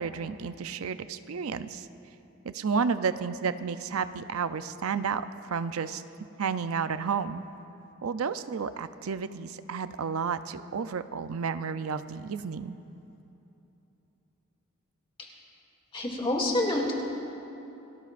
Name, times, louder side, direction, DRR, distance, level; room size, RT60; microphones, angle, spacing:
voice 1, 0.0-1.9 2.4-6.0 6.4-7.4 8.0-12.8, right 6 dB, 80° right, 11 dB, 0.5 m, -31 dB
voice 2, 15.9-16.9, left 1 dB, 25° left, -1 dB, 2.4 m, -27 dB
28.5 x 18.5 x 2.5 m, 3.0 s
head